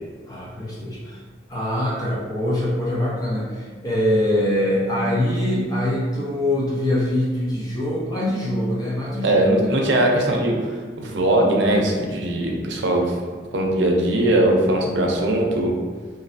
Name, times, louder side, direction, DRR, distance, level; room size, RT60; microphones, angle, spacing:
voice 1, 0.3-1.2 1.5-9.8, left 1 dB, 20° left, -5 dB, 0.5 m, -23 dB
voice 2, 9.2-13.1 13.5-15.7, right 1 dB, 90° right, 0 dB, 0.5 m, -20 dB
3.1 x 2.6 x 2.5 m, 1.5 s
head